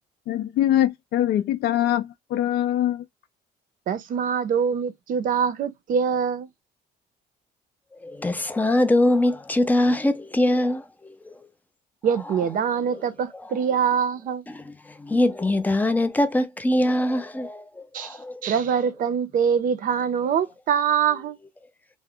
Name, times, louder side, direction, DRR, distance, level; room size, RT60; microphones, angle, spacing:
voice 1, 0.3-3.0, left 12 dB, 70° left, 0.5 m, -23 dB
voice 2, 3.9-6.5 12.0-14.4 17.9-21.4, right 7 dB, 55° right, 0.5 m, -24 dB
voice 3, 7.9-11.4 12.9-13.0 14.5-18.5, left 1 dB, 10° left, 0.4 m, -23 dB
2.3 x 2.0 x 3.5 m
cardioid pair, 110°, 17 cm